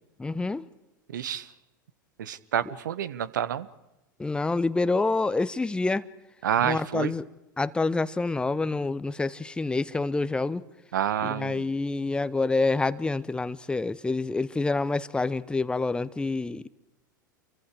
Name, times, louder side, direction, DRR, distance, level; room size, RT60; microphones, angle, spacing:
voice 1, 0.2-0.7 4.2-6.1 6.6-7.2 7.6-10.6 11.2-16.7, left 3 dB, 10° left, 0.9 m, -27 dB
voice 2, 1.1-1.5 2.2-3.7 6.4-7.1 10.9-11.7, right 10 dB, 65° right, 1.2 m, -28 dB
29.5 x 24.0 x 5.0 m
figure-of-eight pair, 85°, 11 cm